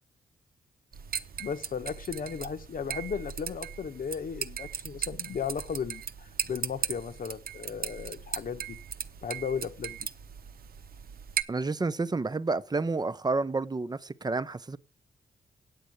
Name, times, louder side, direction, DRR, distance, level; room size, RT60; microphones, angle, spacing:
sound 1, 0.9-11.4, right 8 dB, 70° right, 0.9 m, -38 dB
voice 1, 1.4-8.8 9.2-10.1, left 6 dB, 60° left, 1.2 m, -35 dB
voice 2, 11.5-14.8, right 3 dB, 25° right, 0.7 m, -30 dB
9.0 x 8.4 x 7.9 m
cardioid pair, 70°, 16 cm